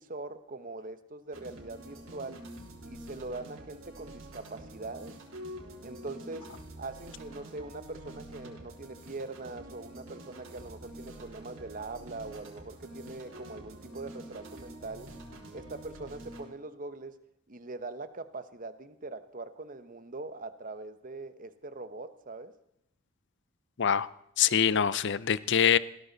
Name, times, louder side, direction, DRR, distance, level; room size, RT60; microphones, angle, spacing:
voice 1, 0.0-2.5 2.9-5.2 5.8-6.5 6.8-15.1 15.5-17.2 17.5-22.6, right 3 dB, 40° right, 11 dB, 1.0 m, -42 dB
sound 1, 1.3-16.5, right 1 dB, 65° right, 4.0 m, -47 dB
voice 2, 24.4-25.8, left 8 dB, 55° left, 18 dB, 0.6 m, -24 dB
19.5 x 16.5 x 4.1 m, 0.77 s
head